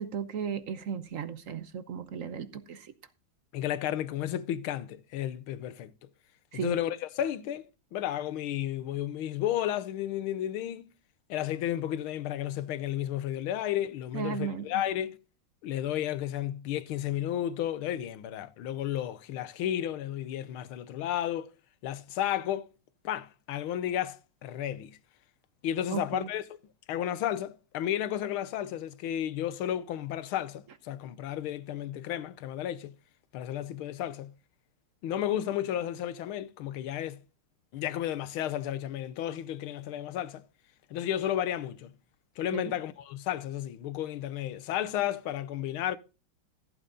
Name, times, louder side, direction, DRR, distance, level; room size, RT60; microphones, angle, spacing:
voice 1, 0.0-2.9 6.5-6.8 14.1-14.7 25.9-26.3 42.5-42.7, right 7 dB, 50° right, 1.1 m, -35 dB
voice 2, 3.5-5.9 6.5-7.6 7.9-10.9 11.3-15.2 15.6-21.5 21.8-22.7 23.0-25.0 25.6-26.4 26.9-32.9 33.3-34.3 35.0-37.2 37.7-40.4 40.9-41.9 42.4-46.0, left 11 dB, 85° left, 1.7 m, -32 dB
15.0 x 8.2 x 3.9 m
omnidirectional pair, 2.2 m